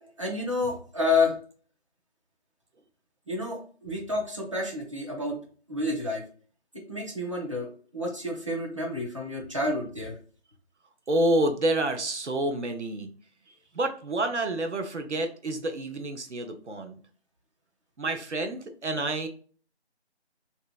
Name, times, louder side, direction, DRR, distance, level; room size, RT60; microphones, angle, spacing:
voice 1, 0.0-1.4 3.3-5.4 5.7-6.2 6.9-10.2, left 2 dB, 30° right, -1 dB, 0.7 m, -29 dB
voice 2, 11.1-13.1 13.7-17.0 18.0-19.3, right 1 dB, 90° right, 6 dB, 0.8 m, -28 dB
3.3 x 2.8 x 2.3 m, 0.42 s
figure-of-eight pair, 160°, 34 cm